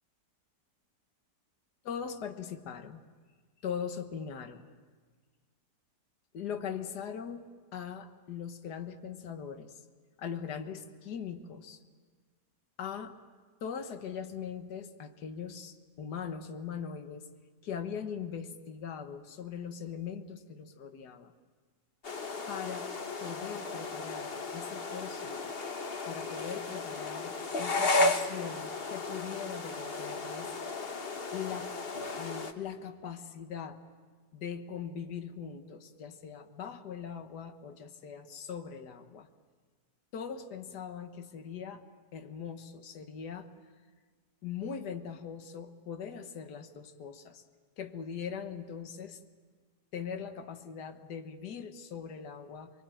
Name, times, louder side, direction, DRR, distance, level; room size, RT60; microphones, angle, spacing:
voice 1, 1.8-3.0 3.6-4.6 6.3-7.5 7.7-9.8 10.2-11.8 12.8-13.1 13.6-17.3 17.6-21.3 22.5-22.9 23.2-25.5 26.1-30.5 31.3-31.7 32.2-33.8 34.3-39.3 40.1-41.8 42.1-43.5 44.4-47.4 47.8-49.2 49.9-52.7, left 7 dB, 70° left, 7 dB, 1.9 m, -40 dB
sound 1, 22.0-32.5, left 2 dB, 35° left, 1.3 m, -34 dB
24.5 x 24.0 x 9.1 m, 1.5 s
omnidirectional pair, 1.8 m